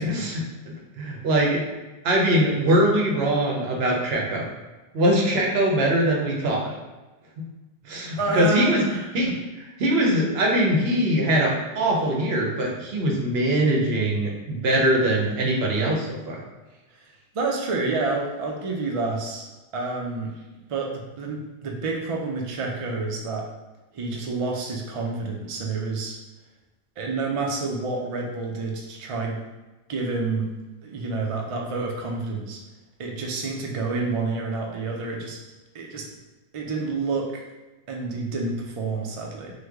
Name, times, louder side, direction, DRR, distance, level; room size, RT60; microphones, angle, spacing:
voice 1, 0.0-1.6 2.0-4.4 4.9-6.7 7.4-7.5 7.8-8.8 9.1-9.3 9.8-16.4, right 1 dB, 70° right, -1 dB, 0.9 m, -22 dB
voice 2, 8.2-9.1 17.3-19.5 19.7-20.3 20.7-23.4 23.9-26.2 27.0-29.4 29.9-30.5 30.8-32.6 33.0-35.4 35.7-36.0 36.5-37.3 37.9-39.5, right 3 dB, 50° right, 0 dB, 0.4 m, -28 dB
3.1 x 2.1 x 3.4 m, 1.1 s
omnidirectional pair, 1.1 m